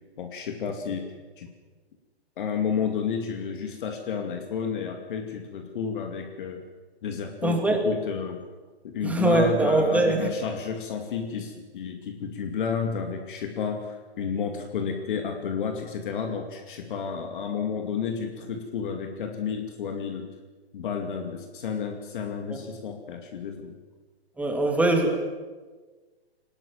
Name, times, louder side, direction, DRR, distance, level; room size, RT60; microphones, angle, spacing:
voice 1, 0.2-1.5 2.4-6.6 7.0-8.4 8.8-20.3 20.7-23.7, left 6 dB, 50° left, 4 dB, 2.5 m, -31 dB
voice 2, 7.4-7.8 9.0-10.3 22.5-22.6 24.4-25.2, right 2 dB, 5° right, 3 dB, 2.6 m, -22 dB
23.5 x 19.0 x 7.4 m, 1.4 s
hypercardioid pair, 145°, 33 cm